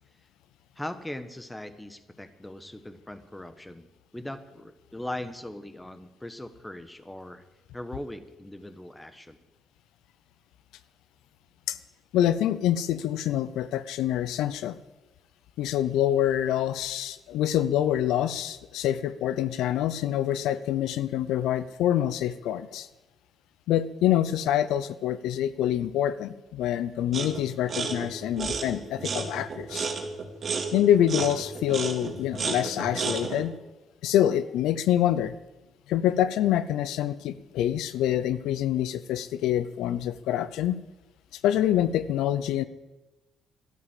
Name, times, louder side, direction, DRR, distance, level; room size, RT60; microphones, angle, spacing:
voice 1, 0.8-3.9 4.1-7.4 7.7-9.4, left 1 dB, 10° left, 11 dB, 1.3 m, -39 dB
voice 2, 12.1-14.8 15.6-22.9 23.7-29.9 30.7-33.6 34.0-35.3 35.9-40.8 41.4-42.6, left 11 dB, 90° left, 15 dB, 0.6 m, -26 dB
sound 1, 27.1-27.4 27.7-33.4, right 4 dB, 50° right, 2.4 m, -32 dB
12.5 x 12.0 x 7.5 m, 1.1 s
cardioid pair, 90°, 0 cm